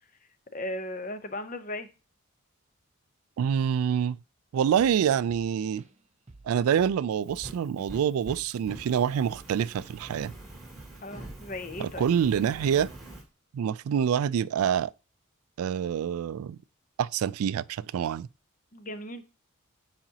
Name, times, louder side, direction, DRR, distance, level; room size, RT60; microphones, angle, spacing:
voice 1, 0.5-1.9 11.0-12.1 18.7-19.2, left 1 dB, 35° left, 0.7 m, -36 dB
voice 2, 3.4-4.2 4.5-5.8 6.5-10.3 11.8-12.9 13.5-14.9 15.6-16.6 17.0-18.3, right 8 dB, 80° right, 0.3 m, -26 dB
Drum kit / Drum, 4.8-5.0 5.3-6.0 6.3-6.5 6.8-9.9 10.3-11.5 11.8-12.0 12.3-12.6, right 2 dB, 30° right, 0.6 m, -51 dB
Fire, 7.1-13.2, right 1 dB, ahead, 2.5 m, -45 dB
8.8 x 4.9 x 2.8 m
head